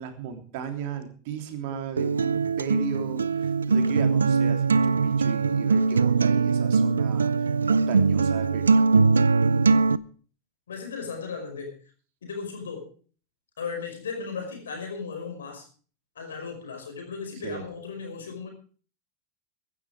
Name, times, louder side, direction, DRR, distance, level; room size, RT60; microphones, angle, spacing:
voice 1, 0.0-8.8 17.4-17.6, right 8 dB, 55° right, 6 dB, 3.3 m, -36 dB
Acoustic guitar, 2.0-10.0, right 4 dB, 80° right, 0.6 m, -21 dB
voice 2, 10.7-11.8 12.2-12.9 13.6-15.7 16.2-18.5, left 5 dB, 75° left, 4 dB, 5.4 m, -36 dB
15.5 x 12.0 x 5.0 m, 0.41 s
figure-of-eight pair, 85°, 0 cm